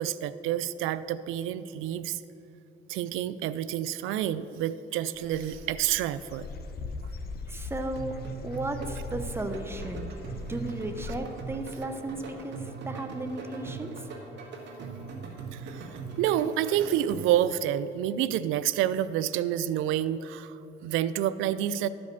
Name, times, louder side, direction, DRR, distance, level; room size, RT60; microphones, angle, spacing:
voice 1, 0.0-2.2 2.9-6.5 15.5-21.9, right 11 dB, 80° right, 15 dB, 0.4 m, -28 dB
Dog / Bird, 5.1-11.4, left 3 dB, 50° left, 0.9 m, -40 dB
voice 2, 7.5-8.1 8.4-10.1 10.5-13.9, right 2 dB, 10° right, 6 dB, 0.8 m, -35 dB
sound 1, 8.0-17.5, right 4 dB, 60° right, 1.7 m, -40 dB
11.5 x 5.2 x 6.9 m, 2.9 s
cardioid pair, 100°, 20 cm